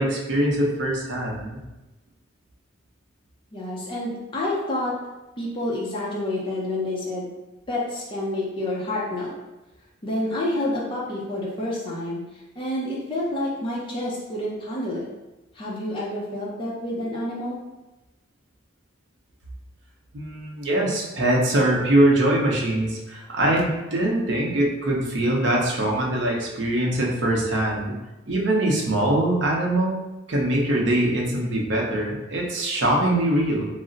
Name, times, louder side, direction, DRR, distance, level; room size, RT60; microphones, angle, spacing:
voice 1, 0.0-1.6 20.1-27.9 28.3-30.0 30.3-33.7, right 1 dB, 60° right, -2 dB, 0.6 m, -22 dB
voice 2, 3.5-4.9 5.4-7.3 7.7-9.3 10.0-12.2 12.6-15.1 15.5-17.6, left 1 dB, 25° left, -6 dB, 0.5 m, -28 dB
2.4 x 2.0 x 3.8 m, 1.0 s
head